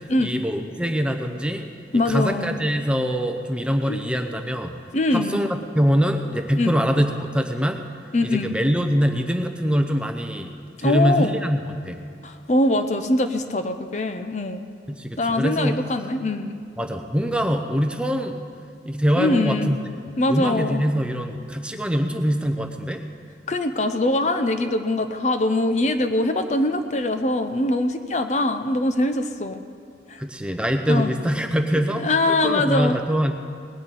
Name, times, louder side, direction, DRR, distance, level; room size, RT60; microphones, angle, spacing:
voice 1, 0.2-1.7 2.1-4.7 5.1-7.8 8.2-10.5 10.8-12.0 14.9-15.8 16.8-18.4 18.8-19.8 20.3-23.0 30.2-33.3, equal, 5° right, 5 dB, 0.7 m, -23 dB
voice 2, 1.9-2.6 3.9-4.0 4.9-5.5 6.6-6.8 8.1-8.5 10.8-11.4 12.2-14.6 15.2-16.6 19.2-19.7 20.2-20.8 23.5-29.6 30.1-30.2 30.9-31.1 32.0-32.9, left 2 dB, 40° left, 8 dB, 0.6 m, -22 dB
19.0 x 6.5 x 9.0 m, 2.3 s
head